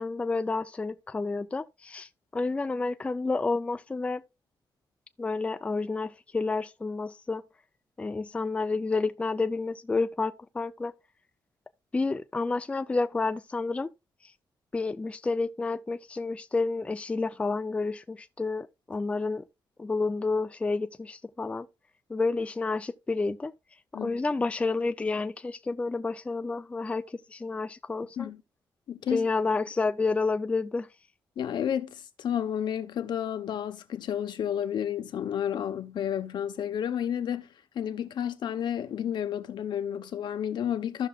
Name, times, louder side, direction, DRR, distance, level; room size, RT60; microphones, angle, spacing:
voice 1, 0.0-4.2 5.2-7.4 8.0-10.9 11.9-13.9 14.7-19.4 19.8-21.7 22.1-23.5 24.0-27.0 27.3-28.3 29.1-30.9, left 3 dB, 15° left, 0.4 m, -30 dB
voice 2, 28.9-29.2 31.4-37.5 37.7-41.1, left 9 dB, 70° left, 0.9 m, -31 dB
14.5 x 6.0 x 2.4 m
wide cardioid pair, 155°, 8 cm